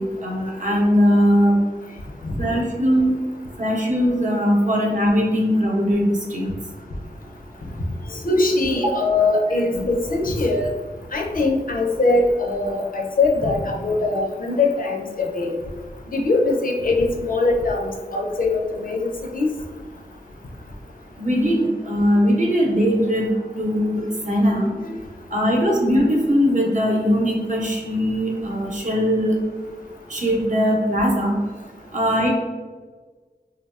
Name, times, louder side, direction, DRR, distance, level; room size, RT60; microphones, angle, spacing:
voice 1, 0.0-1.6 2.4-3.1 3.6-6.5 21.2-23.3 23.6-24.7 25.3-29.3 30.1-31.4 31.9-32.3, equal, 45° right, -2 dB, 0.8 m, -20 dB
voice 2, 8.1-10.7 11.1-15.5 16.1-19.5, left 3 dB, 55° left, 0 dB, 0.4 m, -21 dB
2.8 x 2.0 x 2.3 m, 1.4 s
cardioid pair, 40°, 17 cm